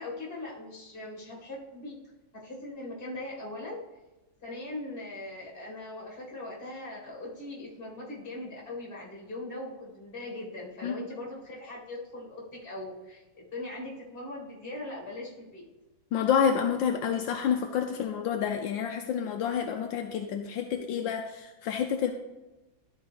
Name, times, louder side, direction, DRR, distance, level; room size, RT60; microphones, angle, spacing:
voice 1, 0.0-2.0 2.3-3.8 4.4-15.7, left 2 dB, 30° left, -3 dB, 2.0 m, -40 dB
voice 2, 16.1-22.1, left 8 dB, 80° left, 4 dB, 1.3 m, -29 dB
12.5 x 4.5 x 3.4 m, 1.1 s
omnidirectional pair, 2.1 m